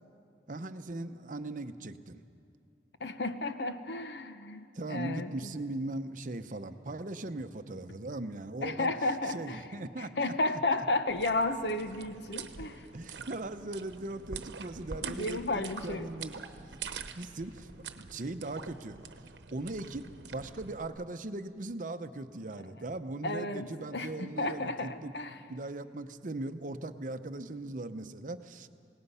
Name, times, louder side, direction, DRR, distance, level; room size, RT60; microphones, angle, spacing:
voice 1, 0.5-2.2 4.7-8.9 9.3-10.3 12.9-19.0 19.5-25.1 25.5-28.7, right 2 dB, 50° right, 10 dB, 0.7 m, -39 dB
voice 2, 3.0-5.5 8.6-9.6 10.0-12.9 15.0-16.1 23.2-25.4, left 2 dB, 75° left, 9 dB, 1.0 m, -33 dB
sound 1, 11.1-20.9, right 5 dB, 80° right, 1.0 m, -45 dB
27.0 x 18.0 x 5.6 m, 2.4 s
head